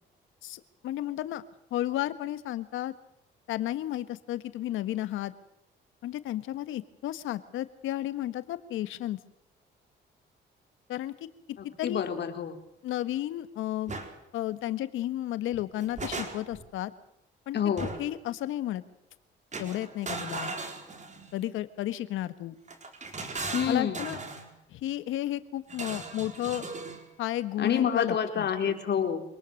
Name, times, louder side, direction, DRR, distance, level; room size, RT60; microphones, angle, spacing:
voice 1, 0.4-1.4 1.7-2.9 3.5-5.3 6.0-9.2 10.9-11.1 11.8-12.1 12.8-13.9 14.3-16.9 17.5-18.8 19.6-20.5 21.3-22.6 23.7-24.2 24.7-26.7 27.2-28.5, left 13 dB, 90° left, 13 dB, 1.5 m, -33 dB
voice 2, 11.6-12.6 17.5-18.0 23.5-24.2 27.6-29.2, left 8 dB, 60° left, 6 dB, 3.8 m, -28 dB
sound 1, 13.9-14.1 15.5-16.7 17.8-18.2 19.5-21.4 22.7-24.5 25.7-27.0, right 3 dB, 35° right, 4.4 m, -38 dB
26.0 x 19.5 x 6.5 m, 0.81 s
cardioid pair, 90°, 20 cm